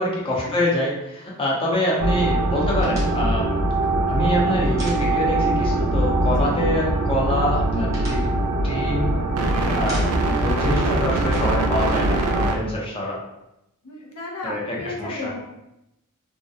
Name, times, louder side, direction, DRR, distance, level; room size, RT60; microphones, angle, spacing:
voice 1, 0.0-3.5 4.1-8.3 8.6-9.1 9.8-13.2 14.4-15.3, left 1 dB, 25° left, -3 dB, 0.5 m, -25 dB
sound 1, 2.0-12.5, right 2 dB, 75° right, 0.4 m, -22 dB
sound 2, 2.8-5.6 5.9-6.0 6.3-7.0 7.4-9.4 9.7-10.4 10.7-12.5, right 1 dB, 15° right, 0.8 m, -42 dB
voice 2, 3.8-4.1 6.4-6.5 9.5-10.0 13.8-15.5, left 2 dB, 80° left, -2 dB, 0.5 m, -34 dB
2.3 x 2.1 x 2.6 m, 0.89 s
head